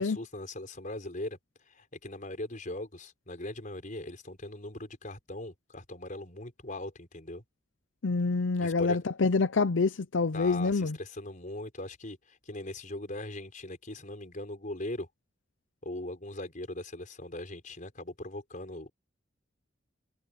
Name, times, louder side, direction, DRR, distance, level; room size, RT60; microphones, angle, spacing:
voice 1, 0.0-1.4 1.7-7.4 8.6-9.0 10.3-15.1 15.8-18.9, left 1 dB, 45° left, 5.2 m, -40 dB
voice 2, 8.0-11.0, left 4 dB, 85° left, 0.7 m, -26 dB
head